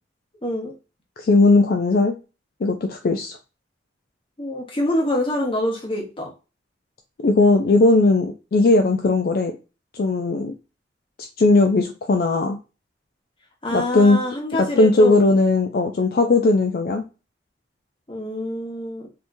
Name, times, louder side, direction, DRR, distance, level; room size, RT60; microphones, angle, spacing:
voice 1, 0.4-0.7 4.4-6.3 13.6-15.3 18.1-19.1, left 1 dB, 30° left, 0 dB, 1.0 m, -26 dB
voice 2, 1.2-2.2 2.6-3.4 7.2-9.5 9.9-10.5 11.4-12.6 13.7-14.2 14.5-17.0, left 2 dB, 55° left, 4 dB, 0.4 m, -18 dB
3.5 x 2.8 x 2.5 m, 0.30 s
head